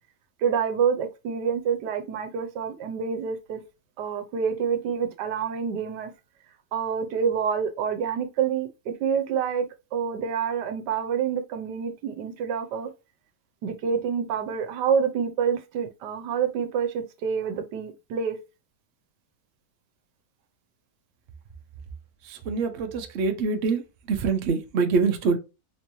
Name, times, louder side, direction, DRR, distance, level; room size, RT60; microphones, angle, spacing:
voice 1, 0.4-3.6 4.0-6.1 6.7-12.9 13.6-18.4, right 7 dB, 85° right, 1.3 m, -27 dB
voice 2, 22.2-25.4, right 4 dB, 55° right, 0.8 m, -25 dB
4.4 x 3.0 x 2.6 m
omnidirectional pair, 1.8 m